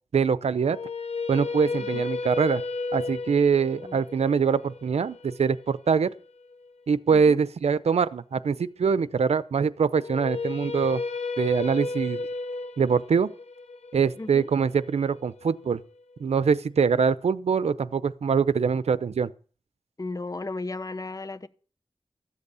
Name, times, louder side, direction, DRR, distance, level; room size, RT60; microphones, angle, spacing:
voice 1, 0.1-0.8 1.3-2.6 2.9-6.1 6.9-11.0 11.4-12.2 12.8-13.3 13.9-15.8 16.2-19.3, right 6 dB, 85° right, 0.7 m, -23 dB
sound 1, 0.6-6.7 9.9-16.0, left 3 dB, 85° left, 1.1 m, -34 dB
voice 2, 7.1-7.4 14.2-14.5 20.0-21.5, left 3 dB, 35° left, 1.0 m, -35 dB
14.0 x 8.2 x 6.9 m
cardioid pair, 55°, 11 cm